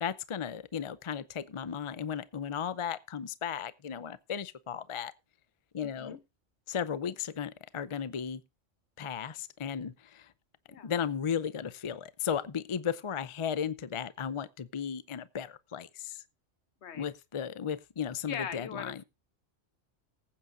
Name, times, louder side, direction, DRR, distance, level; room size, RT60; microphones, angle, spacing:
voice 1, 0.0-5.1 5.7-6.2 6.7-8.4 9.0-10.3 10.8-16.2 17.0-19.0, left 7 dB, 40° left, 0.5 m, -35 dB
voice 2, 5.8-6.2 10.7-10.9 16.8-17.1 18.3-19.0, left 7 dB, 70° left, 1.1 m, -40 dB
20.0 x 8.8 x 2.6 m
omnidirectional pair, 1.3 m